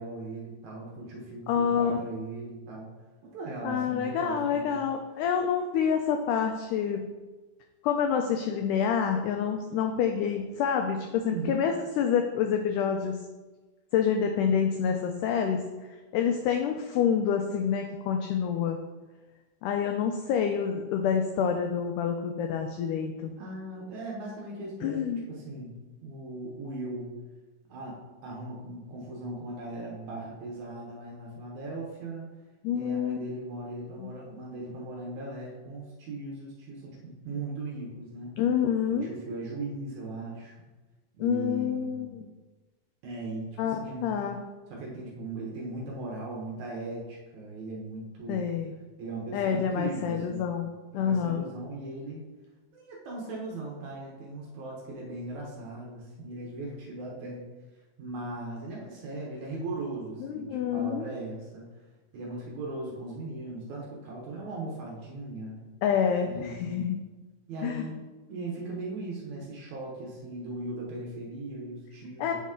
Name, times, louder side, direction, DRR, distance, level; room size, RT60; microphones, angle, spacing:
voice 1, 0.0-2.9 3.3-4.8 11.3-11.7 23.4-25.0 25.3-27.2 27.7-32.3 32.7-38.4 38.9-40.7 41.2-42.0 43.0-44.1 44.7-48.5 49.0-50.6 50.9-52.2 52.7-57.5 58.0-61.7 62.1-65.6 66.2-66.9 67.5-68.0 68.3-72.3, right 2 dB, 65° right, -3 dB, 2.1 m, -38 dB
voice 2, 1.5-2.0 3.6-7.1 7.8-13.2 13.9-15.7 16.1-18.8 19.6-23.3 24.8-25.2 32.6-33.2 34.0-34.1 38.4-39.1 41.2-42.3 43.6-44.4 48.3-48.7 49.3-50.7 50.9-51.4 60.2-61.1 65.8-67.0 67.6-67.9 72.2-72.3, left 7 dB, 85° left, 4 dB, 1.8 m, -27 dB
8.3 x 4.1 x 3.6 m, 1.2 s
omnidirectional pair, 4.1 m